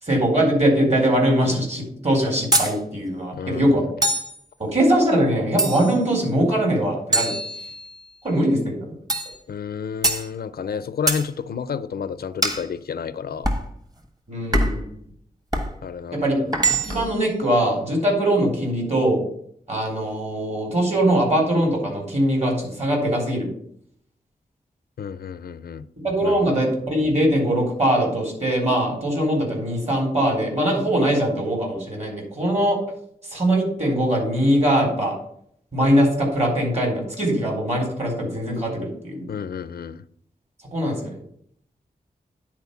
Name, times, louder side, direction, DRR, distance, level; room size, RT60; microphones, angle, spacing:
voice 1, 0.0-3.8 4.6-7.3 8.2-8.9 14.3-15.0 16.1-16.4 16.8-19.2 19.7-23.5 26.0-32.8 33.2-35.2 35.7-39.3 40.7-41.2, right 1 dB, 45° right, 4.2 m, -21 dB
sound 1, 2.5-2.8 4.0-4.4 5.6-6.0 7.1-8.0 9.1-9.4 10.0-10.3 11.1-11.3 12.4-12.7 13.4-13.7 14.5-14.9 15.5-15.7 16.5-17.1, right 2 dB, 25° right, 1.3 m, -23 dB
voice 2, 3.3-3.7 9.5-13.5 15.8-16.3 25.0-25.8 26.2-26.6 39.3-40.0, left 6 dB, 85° left, 0.5 m, -30 dB
9.9 x 4.4 x 7.0 m
wide cardioid pair, 75°, 16 cm